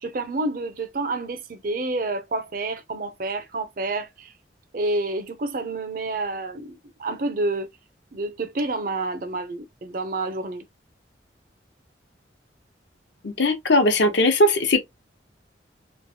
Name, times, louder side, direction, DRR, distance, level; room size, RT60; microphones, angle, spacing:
voice 1, 0.0-4.3 4.7-7.7 8.1-10.7, right 2 dB, 50° right, 0.5 m, -29 dB
voice 2, 13.2-14.8, left 1 dB, 80° left, 0.8 m, -19 dB
3.1 x 2.4 x 2.7 m
head